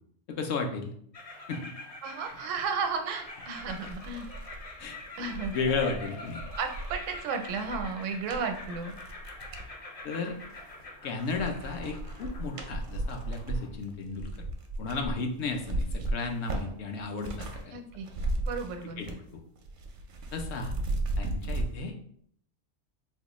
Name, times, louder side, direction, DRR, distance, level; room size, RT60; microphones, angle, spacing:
voice 1, 0.3-0.9 1.5-1.6 4.8-5.0 5.5-6.4 10.0-10.4 11.0-14.3 14.8-17.7 19.0-19.4 20.3-20.8 21.2-21.9, left 4 dB, 70° left, 3 dB, 0.8 m, -33 dB
sound 1, 1.1-13.7, left 2 dB, 40° left, 0.6 m, -45 dB
voice 2, 2.0-4.4 5.2-5.6 6.6-9.0 17.7-18.1 18.4-19.2, right 5 dB, 80° right, 5 dB, 0.9 m, -34 dB
sound 2, 3.0-3.1 3.5-9.7 10.3-10.9 11.2-17.6 17.9-19.3 19.6-21.7, right 2 dB, 60° right, 0.5 m, -36 dB
4.0 x 2.3 x 2.9 m, 0.65 s
omnidirectional pair, 1.3 m